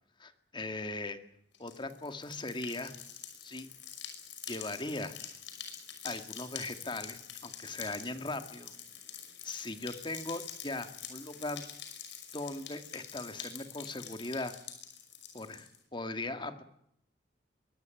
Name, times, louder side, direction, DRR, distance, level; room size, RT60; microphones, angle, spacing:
voice 1, 0.2-1.2 1.6-2.9 3.4-3.7 4.5-5.2 6.0-8.7 9.4-11.7 12.3-14.6 15.3-16.6, left 2 dB, 25° left, 8 dB, 2.0 m, -39 dB
sound 1, 1.5-15.8, left 8 dB, 75° left, 5.8 m, -46 dB
23.5 x 18.0 x 9.2 m, 0.74 s
head